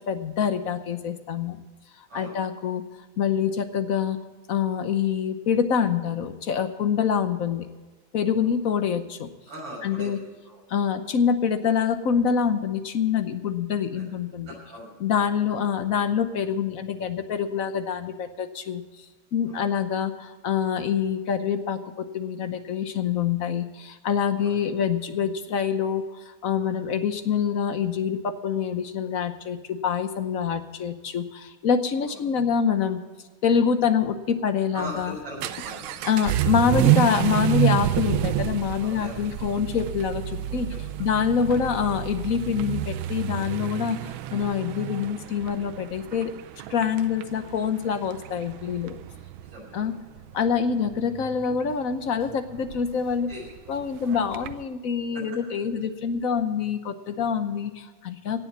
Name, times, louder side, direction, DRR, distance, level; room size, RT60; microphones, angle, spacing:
voice 1, 0.1-1.6 2.0-2.8 3.2-4.2 4.5-7.7 8.1-9.3 9.8-10.2 10.7-14.5 15.0-18.8 19.3-33.0 33.4-35.1 36.1-40.7 41.0-46.3 46.7-49.0 49.7-49.9 50.3-53.3 53.7-58.5, left 7 dB, 55° left, 10 dB, 1.0 m, -26 dB
voice 2, 9.5-10.1 10.5-10.6 13.8-14.0 14.5-14.9 19.5-19.7 24.4-24.5 32.1-32.2 34.7-36.0 38.8-39.1 40.5-40.8 41.1-41.2 49.4-49.9 53.3-53.4 54.0-54.2, right 1 dB, 65° right, -3 dB, 6.7 m, -40 dB
Vehicle / Accelerating revving vroom, 34.8-54.6, right 14 dB, 90° right, 1.5 m, -29 dB
sound 1, 35.6-35.9 37.6-37.9 39.6-39.9 41.6-41.9, left 7 dB, 85° left, 2.1 m, -43 dB
17.5 x 7.2 x 7.2 m, 1.3 s
omnidirectional pair, 2.2 m